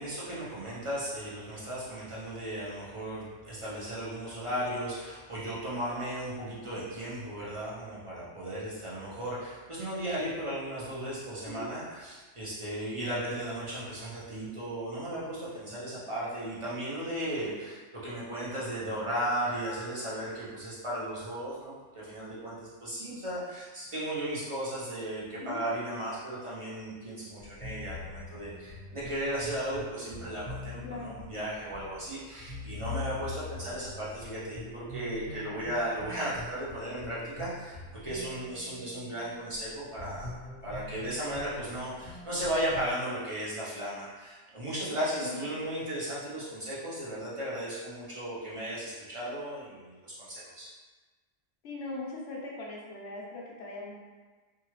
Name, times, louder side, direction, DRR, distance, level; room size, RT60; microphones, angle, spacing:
voice 1, 0.0-37.8 38.0-40.4 40.6-50.7, right 1 dB, 35° right, -9 dB, 0.5 m, -35 dB
voice 2, 11.5-11.8 25.4-25.7 30.8-31.2 45.2-45.4 51.6-53.9, left 3 dB, 70° left, -4 dB, 0.9 m, -40 dB
sound 1, 27.4-42.9, left 3 dB, 15° left, 1.1 m, -44 dB
2.6 x 2.3 x 3.0 m, 1.3 s
omnidirectional pair, 1.3 m